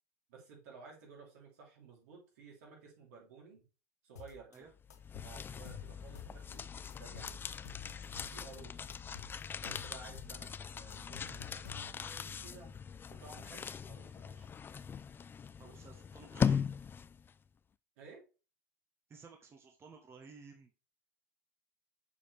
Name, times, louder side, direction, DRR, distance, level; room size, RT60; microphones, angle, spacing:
voice 1, 0.3-3.6 4.0-4.7 5.2-6.6 7.0-7.5 8.2-9.0 9.6-12.7 13.1-14.5 15.6-15.7 18.0-18.2, right 4 dB, 70° right, -1 dB, 3.4 m, -55 dB
sound 1, 4.2-4.6 4.9-6.6 6.9-8.6 8.9-10.4 10.7-12.2, left 8 dB, 85° left, 1.0 m, -51 dB
sound 2, 4.8-17.3, left 7 dB, 25° left, 0.4 m, -40 dB
voice 2, 15.6-16.7 19.1-20.7, right 5 dB, 30° right, 4 dB, 1.2 m, -55 dB
6.9 x 4.9 x 3.4 m, 0.32 s
hypercardioid pair, 85°, 9 cm